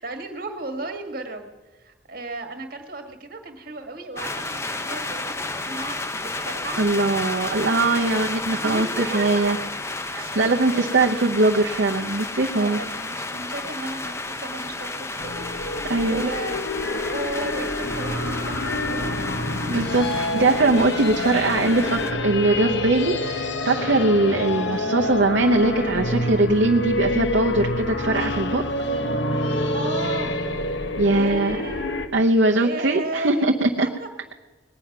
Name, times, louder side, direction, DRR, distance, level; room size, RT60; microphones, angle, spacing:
voice 1, 0.0-1.5 1.8-6.8 8.6-9.5 10.2-10.4 10.7-10.9 12.5-19.3 19.6-20.0 23.8-24.1 29.5-30.3 31.1-31.9 32.6-33.5 33.8-34.1, right 2 dB, 50° right, 6 dB, 1.7 m, -35 dB
sound 1, 4.2-22.1, left 2 dB, 15° left, 0.6 m, -32 dB
voice 2, 6.8-9.6 10.1-12.8 15.9-16.3 19.7-28.6 31.0-31.6 32.1-33.9, right 2 dB, 70° right, 1 dB, 0.8 m, -21 dB
sound 2, 15.2-32.1, left 1 dB, 70° left, 1.0 m, -27 dB
20.0 x 9.2 x 5.9 m, 1.2 s
head